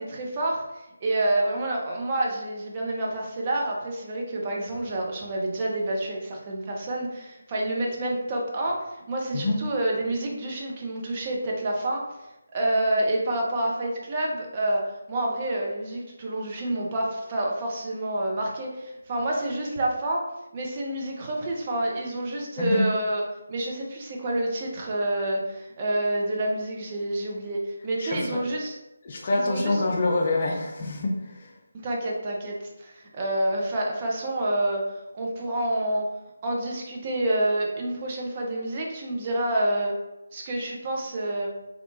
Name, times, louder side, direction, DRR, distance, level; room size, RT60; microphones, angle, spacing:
voice 1, 0.0-12.1 12.5-20.2 20.5-23.2 23.5-28.8 29.3-29.8 31.8-34.8 35.1-36.1 36.4-39.9 40.3-41.5, right 1 dB, 25° right, -2 dB, 0.4 m, -28 dB
voice 2, 28.0-28.4 29.0-31.5, left 2 dB, 35° left, 0 dB, 0.4 m, -26 dB
2.8 x 2.1 x 2.6 m, 0.93 s
figure-of-eight pair, 155°, 0 cm